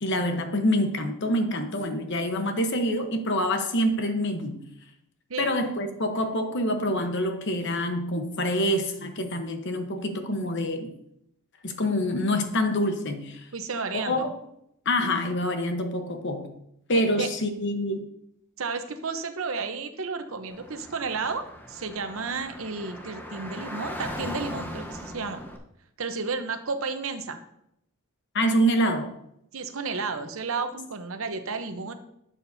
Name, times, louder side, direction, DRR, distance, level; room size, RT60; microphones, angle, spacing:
voice 1, 0.0-4.6 5.4-10.9 11.6-13.5 13.9-14.3 14.8-16.5 16.9-18.1 28.3-29.1, equal, 55° left, 6 dB, 1.0 m, -26 dB
voice 2, 13.5-14.3 16.9-17.3 18.6-25.4 26.0-27.4 29.5-31.9, right 4 dB, 70° right, 8 dB, 0.8 m, -32 dB
Car / Traffic noise roadway noise, 20.5-25.6, equal, 10° left, 0.9 m, -38 dB
11.5 x 7.3 x 2.7 m, 0.78 s
head